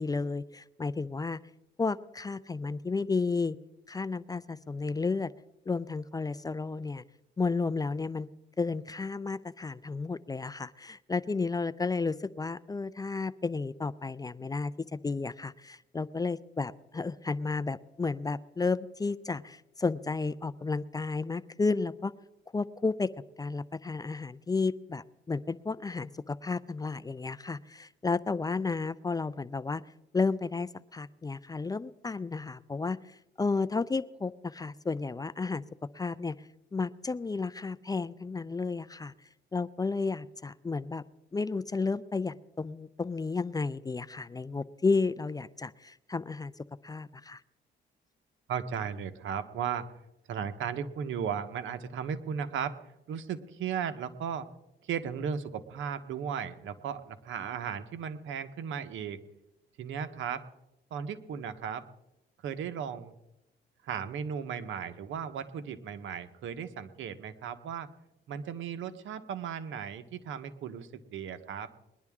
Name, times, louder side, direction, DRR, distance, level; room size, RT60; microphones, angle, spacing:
voice 1, 0.0-1.4 1.8-3.6 3.9-5.3 5.7-7.0 7.4-8.3 8.6-22.1 22.5-23.1 23.4-29.8 30.1-35.6 35.9-36.3 36.7-39.1 39.5-41.0 41.3-47.4, left 4 dB, 20° left, 17 dB, 0.4 m, -32 dB
voice 2, 48.5-49.9 50.3-52.8 53.1-54.5 54.8-59.2 59.8-60.4 60.9-61.9 62.4-63.1 63.8-67.9 68.3-71.7, right 7 dB, 75° right, 11 dB, 1.0 m, -36 dB
21.0 x 11.0 x 3.6 m, 0.91 s
cardioid pair, 90°, 20 cm